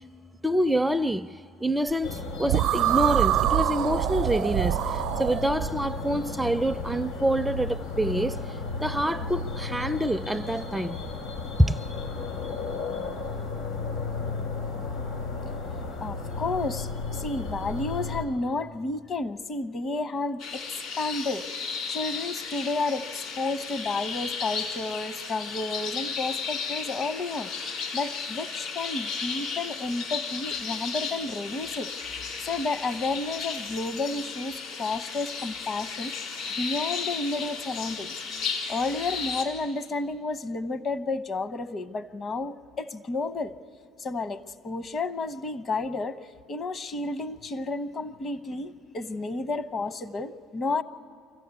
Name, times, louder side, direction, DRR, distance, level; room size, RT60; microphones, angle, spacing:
voice 1, 0.4-1.3 1.6-4.8 5.2-8.4 8.8-11.0 11.7-11.8, right 1 dB, 5° right, 0.4 m, -26 dB
sound 1, 2.0-18.2, left 3 dB, 90° left, 4.0 m, -34 dB
sound 2, 2.5-5.7, right 13 dB, 70° right, 0.5 m, -25 dB
voice 2, 16.0-20.6 21.0-23.1 23.4-36.3 36.6-38.1 38.7-43.5 44.0-46.2 46.5-50.8, left 3 dB, 40° left, 1.0 m, -31 dB
sound 3, 20.4-39.4, left 5 dB, 65° left, 3.7 m, -34 dB
24.5 x 14.5 x 8.4 m
supercardioid pair, 85°, 0 cm